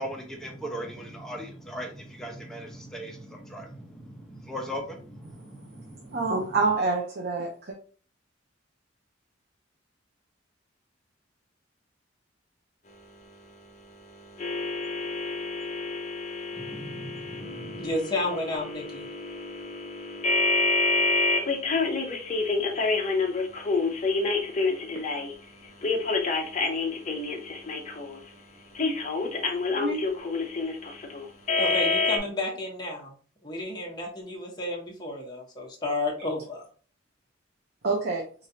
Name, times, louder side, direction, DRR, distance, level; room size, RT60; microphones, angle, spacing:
voice 1, 0.0-6.6 16.6-18.0, equal, 5° left, 0 dB, 0.8 m, -39 dB
voice 2, 6.1-7.8 29.7-30.0 37.8-38.3, right 3 dB, 55° right, -1 dB, 0.7 m, -27 dB
sound 1, 14.4-25.3 25.8-28.2 28.8-32.2, left 3 dB, 40° left, 0.7 m, -28 dB
voice 3, 17.8-19.1 31.6-33.1 33.4-36.6, left 1 dB, 20° left, -1 dB, 1.2 m, -31 dB
4.8 x 2.6 x 2.8 m, 0.41 s
head